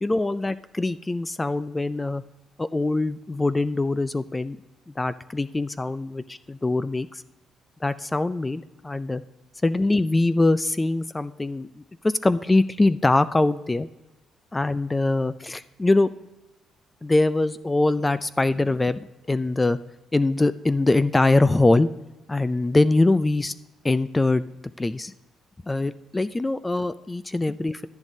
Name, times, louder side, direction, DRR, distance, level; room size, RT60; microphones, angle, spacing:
voice 1, 0.0-2.2 2.6-4.6 5.0-7.2 7.8-9.2 9.6-13.9 14.5-16.1 17.0-19.8 20.1-21.9 22.3-23.5 23.8-24.4 24.8-25.1 25.7-27.9, left 2 dB, 15° left, 15 dB, 0.4 m, -23 dB
12.0 x 10.5 x 2.7 m, 1.0 s
cardioid pair, 90°, 0 cm